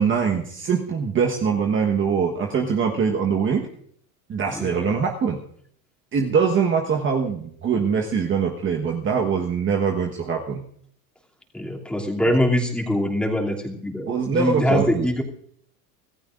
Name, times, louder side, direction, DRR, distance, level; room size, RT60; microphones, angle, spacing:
voice 1, 0.0-3.7 4.3-5.4 6.1-10.6 14.1-15.1, right 6 dB, 30° right, 1 dB, 1.3 m, -23 dB
voice 2, 4.5-4.9 11.5-15.2, left 1 dB, ahead, -2 dB, 2.8 m, -23 dB
25.5 x 14.5 x 2.5 m, 0.64 s
supercardioid pair, 120°, 42 cm